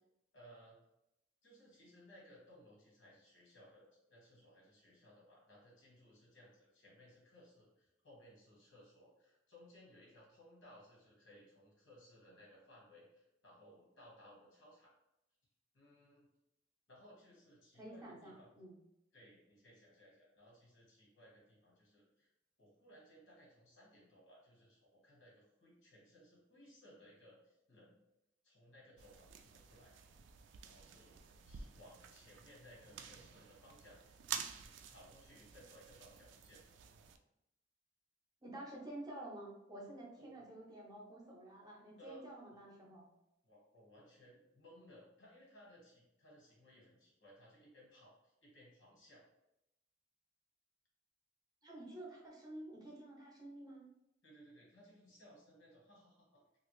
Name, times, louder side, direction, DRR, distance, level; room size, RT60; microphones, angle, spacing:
voice 1, 0.3-0.8 1.4-14.9 15.7-16.3 16.9-18.5 19.1-22.3 22.6-28.0 28.4-29.9 30.6-31.2 31.5-36.7 40.2-40.4 42.0-42.3 42.5-42.6 43.4-49.2 54.2-56.4, equal, 85° left, -4 dB, 1.5 m, -62 dB
voice 2, 17.7-18.8 38.4-43.1 51.6-53.8, right 1 dB, 20° right, -2 dB, 0.7 m, -50 dB
sound 1, 29.0-37.2, right 7 dB, 70° right, 0.3 m, -50 dB
2.9 x 2.5 x 3.1 m, 0.86 s
head